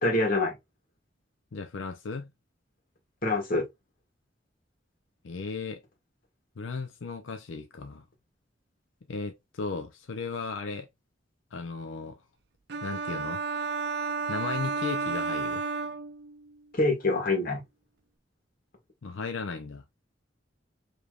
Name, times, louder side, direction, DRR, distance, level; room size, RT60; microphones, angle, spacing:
voice 1, 0.0-0.5 3.2-3.6 16.7-17.6, left 2 dB, 50° left, 1.8 m, -25 dB
voice 2, 1.5-2.3 5.2-5.8 6.6-8.0 9.1-10.9 11.5-12.2 12.8-13.4 14.3-15.6 19.0-19.8, left 4 dB, 85° left, 0.6 m, -36 dB
sound 1, 12.7-16.6, right 4 dB, 60° right, 0.5 m, -32 dB
5.0 x 3.3 x 2.4 m
head